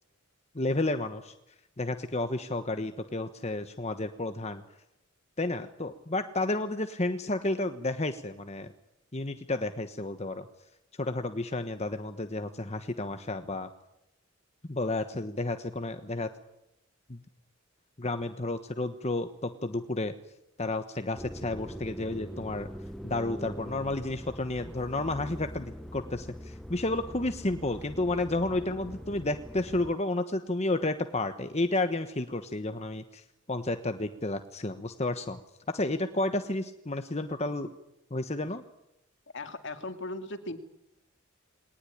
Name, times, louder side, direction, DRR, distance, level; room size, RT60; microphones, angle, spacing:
voice 1, 0.5-1.3 1.8-4.6 5.4-8.7 9.1-10.4 11.0-13.7 14.7-16.3 17.1-17.2 18.0-20.1 20.6-22.7 23.0-35.4 35.7-37.7 38.1-38.6, left 2 dB, 30° left, 8 dB, 1.2 m, -31 dB
sound 1, 21.2-30.0, equal, ahead, 0.8 m, -43 dB
voice 2, 39.3-40.6, left 2 dB, 60° left, 8 dB, 2.3 m, -37 dB
21.5 x 19.0 x 9.9 m, 0.86 s
head